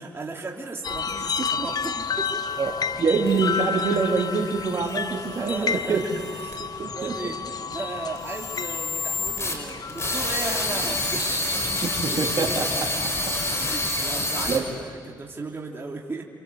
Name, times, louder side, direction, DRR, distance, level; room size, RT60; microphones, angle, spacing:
voice 1, 0.0-2.6 4.0-4.2 5.4-11.3 12.1-12.6 13.6-16.3, right 3 dB, 30° right, -1 dB, 3.2 m, -36 dB
sound 1, 0.8-14.1, left 5 dB, 55° left, 1.1 m, -32 dB
voice 2, 2.6-6.0 6.8-7.1 11.8-12.8 13.3-13.4 14.5-14.6, right 4 dB, 55° right, 1 dB, 3.7 m, -25 dB
sound 2, 3.3-6.5 8.2-14.6, left 2 dB, 35° left, 5.8 m, -29 dB
27.0 x 27.0 x 8.2 m, 2.1 s
cardioid pair, 65°, 8 cm